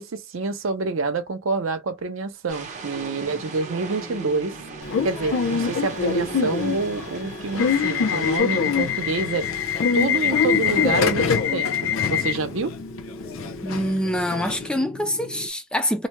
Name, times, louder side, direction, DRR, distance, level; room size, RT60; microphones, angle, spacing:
voice 1, 0.0-4.6 5.0-9.5 9.9-12.8, right 4 dB, 75° right, 0.6 m, -27 dB
sound 1, 2.5-8.4, right 4 dB, 35° right, 0.6 m, -39 dB
sound 2, 2.9-15.5, left 1 dB, 55° left, 0.7 m, -39 dB
Subway metro underground / Alarm, 4.8-14.7, left 6 dB, 80° left, 0.5 m, -24 dB
voice 2, 13.6-16.1, equal, 5° left, 0.3 m, -25 dB
2.6 x 2.1 x 3.0 m
head